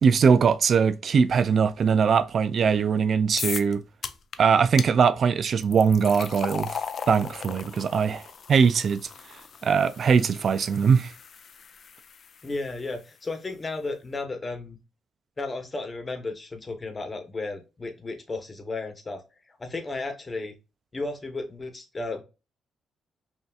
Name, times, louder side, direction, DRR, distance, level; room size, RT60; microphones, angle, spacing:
voice 1, 0.0-3.8 4.4-6.8 7.1-9.1 9.6-11.1, right 6 dB, 55° right, 0.3 m, -21 dB
sound 1, 3.4-3.7 4.0-4.4 4.8-4.9 5.6-12.7, left 6 dB, 50° left, 0.4 m, -37 dB
voice 2, 12.4-14.8 15.4-19.2 19.6-20.5 20.9-22.2, left 3 dB, 25° left, 1.1 m, -34 dB
5.6 x 2.6 x 2.4 m
cardioid pair, 90°, 0 cm